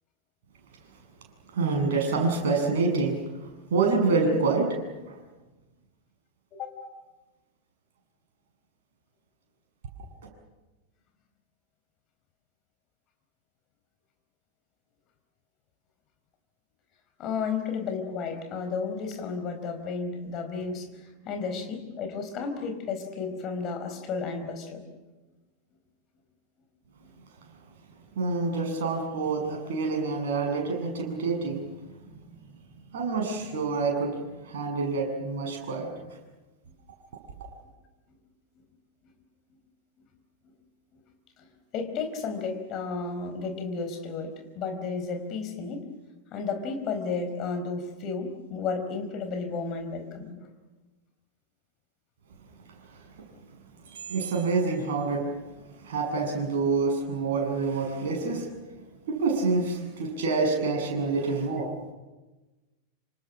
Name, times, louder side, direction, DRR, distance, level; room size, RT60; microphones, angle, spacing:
voice 1, 1.5-3.1 3.7-4.8 5.1-5.2 28.2-31.7 32.9-34.2 34.4-35.9 53.9-55.2 55.8-58.5 59.1-61.7, right 4 dB, 55° right, 1 dB, 7.9 m, -27 dB
voice 2, 17.2-24.9 41.4-41.5 41.7-45.9 46.3-50.5, left 5 dB, 35° left, 6 dB, 4.5 m, -33 dB
28.0 x 26.5 x 6.4 m, 1.1 s
figure-of-eight pair, 90°, 0 cm